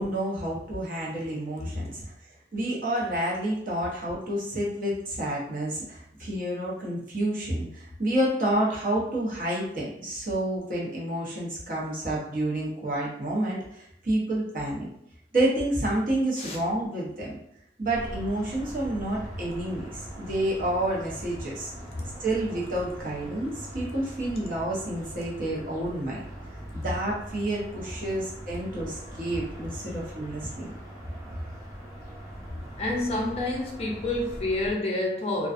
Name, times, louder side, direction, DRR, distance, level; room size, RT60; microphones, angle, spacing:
voice 1, 0.0-2.0 2.5-14.9 15.3-17.4 17.8-21.7 22.2-26.3 26.7-30.7, right 1 dB, 50° right, -5 dB, 0.8 m, -29 dB
sound 1, 17.9-34.7, equal, 20° right, 0.5 m, -42 dB
voice 2, 32.8-35.5, left 2 dB, 35° left, -1 dB, 0.4 m, -28 dB
2.4 x 2.3 x 2.4 m, 0.73 s
head